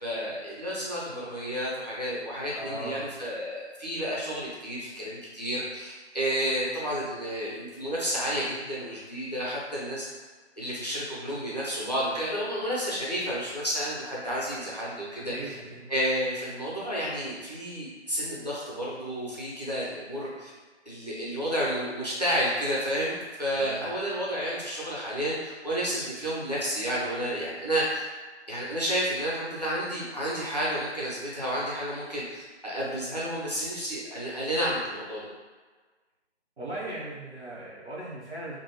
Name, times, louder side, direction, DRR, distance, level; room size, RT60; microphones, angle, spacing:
voice 1, 0.0-10.1 10.6-15.3 15.9-20.5 20.9-28.0 28.5-35.3, equal, 35° left, -7 dB, 0.5 m, -31 dB
voice 2, 2.5-3.1 15.3-15.8 23.5-23.8 36.6-38.6, right 1 dB, 70° right, -8 dB, 1.3 m, -38 dB
2.5 x 2.2 x 2.9 m, 1.4 s
figure-of-eight pair, 165°, 35 cm